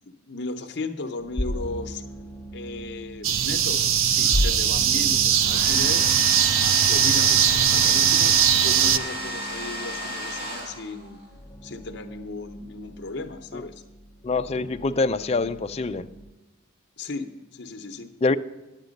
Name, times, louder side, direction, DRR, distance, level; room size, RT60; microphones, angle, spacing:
voice 1, 0.0-2.0 2.5-6.1 6.5-11.2 11.6-13.8 17.0-18.1, left 3 dB, 55° left, 5 dB, 0.7 m, -35 dB
sound 1, 1.2-16.3, equal, 15° left, 0.7 m, -37 dB
sound 2, 3.2-9.0, right 9 dB, 80° right, 0.5 m, -20 dB
Domestic sounds home sounds, 5.3-11.2, equal, 40° right, 4.4 m, -32 dB
voice 2, 14.2-16.1 18.2-18.4, left 3 dB, 30° left, 8 dB, 0.4 m, -25 dB
10.5 x 8.2 x 5.2 m, 1.1 s
head